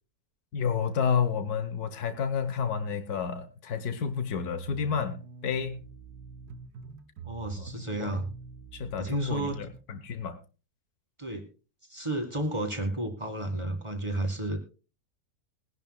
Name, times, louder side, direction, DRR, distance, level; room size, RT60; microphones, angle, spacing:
voice 1, 0.5-5.8 7.6-7.7 8.0-8.1 8.7-10.4, left 6 dB, 80° left, 9 dB, 1.7 m, -30 dB
sound 1, 4.5-9.8, right 6 dB, 90° right, 1.4 m, -45 dB
voice 2, 7.2-8.3 9.0-9.7 11.2-11.5 11.9-14.7, right 1 dB, 20° right, 4 dB, 1.9 m, -32 dB
21.5 x 10.5 x 2.2 m, 0.33 s
omnidirectional pair, 1.6 m